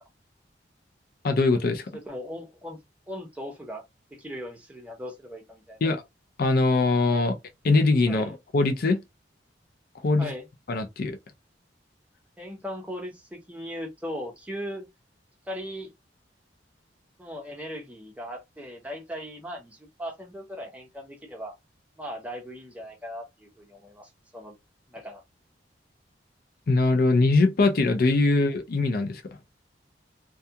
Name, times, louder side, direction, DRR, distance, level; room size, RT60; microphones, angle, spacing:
voice 1, 1.2-1.9 5.8-6.0 6.4-7.4 7.6-9.0 10.0-10.3 10.7-11.2 26.7-29.2, left 3 dB, 55° left, 0.5 m, -22 dB
voice 2, 1.9-2.8 3.1-3.8 4.1-5.8 8.1-8.3 10.2-10.5 12.4-14.8 15.5-15.9 17.2-21.5 22.0-24.5 24.9-25.2, equal, 10° right, 0.7 m, -38 dB
2.4 x 2.3 x 2.7 m
head